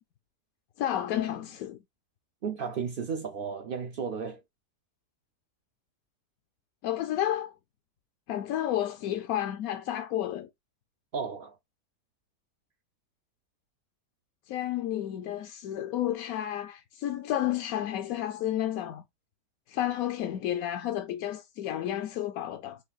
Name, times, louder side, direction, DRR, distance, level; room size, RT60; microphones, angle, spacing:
voice 1, 0.8-1.8 6.8-7.5 8.3-10.5 14.5-19.0 19.7-22.8, left 12 dB, 70° left, 0.9 m, -31 dB
voice 2, 2.4-4.4 11.1-11.6, right 6 dB, 75° right, 0.5 m, -34 dB
4.9 x 2.6 x 3.9 m
omnidirectional pair, 1.8 m